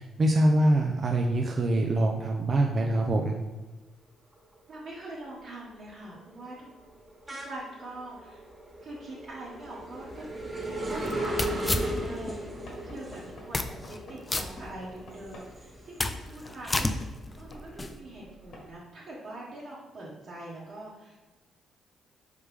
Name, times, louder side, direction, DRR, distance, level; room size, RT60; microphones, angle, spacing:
voice 1, 0.2-3.4, right 1 dB, 45° right, 1 dB, 0.4 m, -24 dB
sound 1, 4.4-4.8 5.1-16.4 16.8-18.5, right 1 dB, 20° right, 1.4 m, -37 dB
voice 2, 4.7-6.8 7.3-8.4 8.8-10.3 10.9-17.0 17.4-21.1, right 1 dB, 60° right, -8 dB, 1.2 m, -43 dB
sound 2, 10.1-12.4 12.8-12.9 13.4-14.0 14.3-15.2 15.6-18.0, left 2 dB, 20° left, 0.3 m, -32 dB
Knock / Wood, 12.7-15.6 16.5-16.6 17.5-17.7 18.5-18.7, left 1 dB, 70° left, 1.2 m, -49 dB
4.8 x 3.2 x 3.3 m, 1.3 s
cardioid pair, 90°, 0 cm